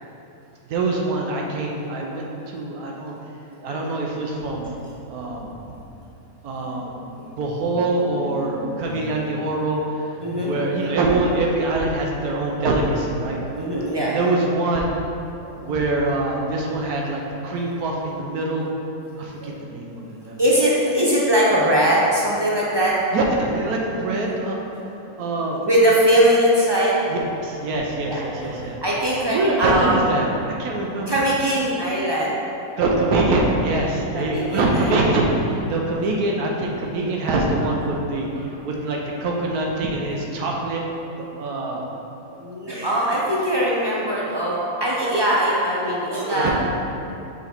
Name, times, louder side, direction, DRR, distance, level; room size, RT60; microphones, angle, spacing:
voice 1, 0.7-3.2 3.6-4.8 5.1-5.5 6.4-7.0 7.4-10.1 10.4-13.4 14.0-14.9 15.5-18.7 19.2-20.4 23.1-24.6 25.2-25.6 27.1-28.8 29.3-31.2 32.8-40.8 41.2-41.8 46.3-46.5, right 2 dB, 80° right, -1 dB, 1.2 m, -24 dB
voice 2, 6.6-7.4 8.4-8.8 10.2-10.5 13.6-14.2 15.4-15.5 19.4-19.5 20.4-23.1 25.6-27.0 28.1-28.2 28.8-30.0 31.1-32.3 34.1-34.9 42.4-46.5, equal, 35° right, -6 dB, 0.4 m, -21 dB
5.8 x 3.8 x 4.4 m, 2.8 s
omnidirectional pair, 1.6 m